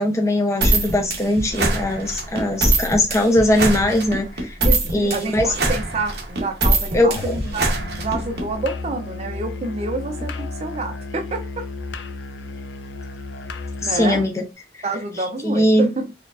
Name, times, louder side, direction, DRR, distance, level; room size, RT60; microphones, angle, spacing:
voice 1, 0.0-4.6 4.9-5.5 6.9-7.3 13.8-14.4 15.4-15.9, left 1 dB, 15° left, 0.5 m, -20 dB
sound 1, 0.6-8.5, right 2 dB, 60° right, 0.9 m, -22 dB
voice 2, 4.6-7.7 8.0-11.6 13.8-14.2 14.8-16.1, right 3 dB, 35° right, 0.4 m, -28 dB
Musical instrument, 7.1-14.3, left 3 dB, 70° left, 0.4 m, -33 dB
4.2 x 2.4 x 2.4 m
head